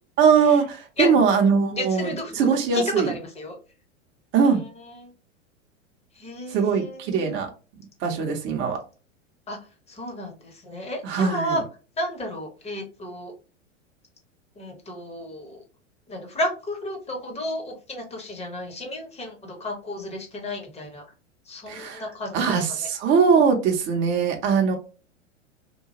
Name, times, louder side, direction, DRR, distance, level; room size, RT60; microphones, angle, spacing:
voice 1, 0.2-3.1 4.3-4.6 6.5-7.5 8.0-8.8 11.0-11.6 21.7-22.0 22.3-24.8, right 6 dB, 30° right, 0.7 m, -21 dB
voice 2, 1.7-3.6 4.4-5.1 6.2-7.4 9.5-9.6 9.9-11.6 12.0-13.3 14.6-15.6 16.1-21.0 21.5-22.6, left 1 dB, 15° left, 1.0 m, -32 dB
2.9 x 2.2 x 2.8 m
figure-of-eight pair, 95°, 37 cm